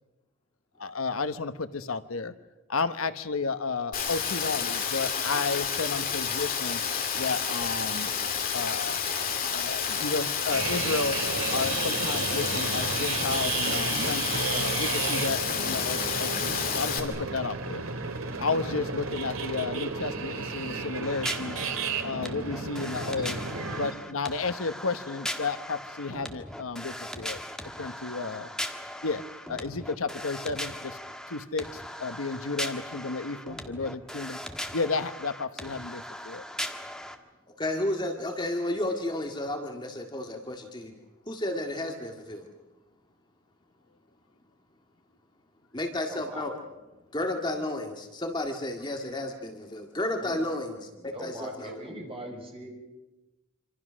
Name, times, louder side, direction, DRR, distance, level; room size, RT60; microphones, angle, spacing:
voice 1, 0.8-2.3 2.7-6.8 7.1-8.1 8.5-9.0 9.5-11.2 11.5-17.8 18.4-21.7 22.0-23.4 23.8-27.4 27.8-28.5 29.0-31.0 31.3-31.7 32.0-34.4 34.7-36.4, left 4 dB, 75° left, 11 dB, 1.0 m, -32 dB
Rain, 3.9-17.0, left 7 dB, 40° left, 3.0 m, -30 dB
sound 1, 10.5-23.9, right 4 dB, 75° right, 2.3 m, -33 dB
sound 2, 21.0-37.1, left 1 dB, 5° left, 1.5 m, -39 dB
voice 2, 37.6-40.9 41.3-42.5 45.7-46.6 47.1-51.8, left 1 dB, 20° left, 3 dB, 2.0 m, -32 dB
voice 3, 46.1-46.4 50.2-50.4 51.0-52.7, right 1 dB, 25° right, 1 dB, 5.8 m, -41 dB
26.5 x 26.5 x 6.3 m, 1.1 s
head